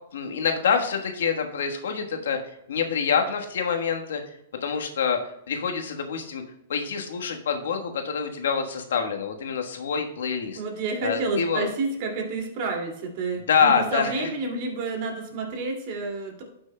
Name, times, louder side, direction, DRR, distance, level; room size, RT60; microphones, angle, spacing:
voice 1, 0.1-2.4 2.7-4.2 4.6-5.2 5.5-6.4 6.7-10.6 11.0-11.7 13.5-14.3, left 6 dB, 80° left, 4 dB, 1.3 m, -26 dB
voice 2, 10.6-16.4, right 3 dB, 45° right, 1 dB, 2.3 m, -29 dB
12.0 x 6.1 x 2.2 m, 0.80 s
hypercardioid pair, 140°, 0 cm